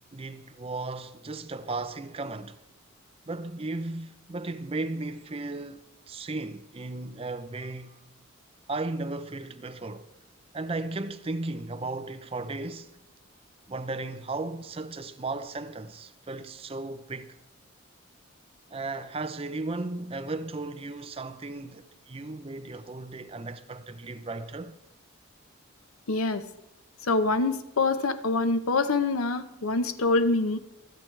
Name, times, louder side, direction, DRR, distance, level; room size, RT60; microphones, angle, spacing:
voice 1, 0.1-2.6 3.3-8.0 8.7-10.1 10.5-12.9 13.7-17.4 18.7-24.8, right 2 dB, 25° right, 0.5 m, -35 dB
voice 2, 26.1-26.4 27.0-30.6, left 3 dB, 85° left, 0.8 m, -25 dB
26.5 x 9.0 x 3.3 m
head